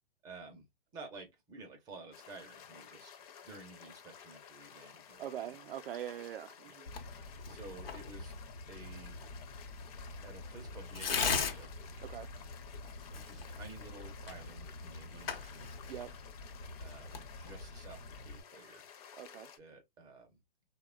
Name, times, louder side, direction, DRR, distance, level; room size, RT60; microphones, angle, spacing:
voice 1, 0.2-0.7 0.9-3.2 3.4-5.5 6.6-6.7 7.5-8.4 8.7-9.2 10.2-11.7 13.1-15.7 16.8-18.9 19.6-20.4, right 3 dB, 15° right, 0.4 m, -52 dB
sound 1, 2.1-19.6, left 8 dB, 40° left, 0.5 m, -54 dB
voice 2, 5.2-6.9 12.0-12.3 15.9-16.1 19.1-19.5, right 11 dB, 75° right, 0.4 m, -43 dB
Tearing, 6.9-18.4, left 5 dB, 85° left, 0.7 m, -41 dB
2.8 x 2.1 x 2.3 m
hypercardioid pair, 135°, 29 cm